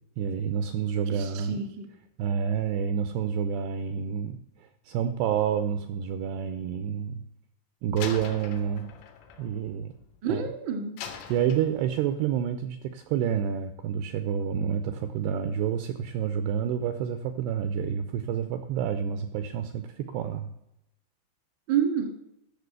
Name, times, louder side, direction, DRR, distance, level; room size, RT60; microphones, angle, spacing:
voice 1, 0.2-1.6 2.2-4.4 4.9-7.2 7.8-8.9 9.4-9.9 10.3-10.4 11.3-20.5, right 8 dB, 85° right, 9 dB, 2.4 m, -28 dB
voice 2, 1.1-1.9 10.2-10.9 21.7-22.1, right 7 dB, 60° right, 5 dB, 1.2 m, -28 dB
Slam, 8.0-10.4 11.0-12.2, left 7 dB, 85° left, 4.0 m, -42 dB
12.0 x 6.9 x 8.0 m, 0.80 s
omnidirectional pair, 5.6 m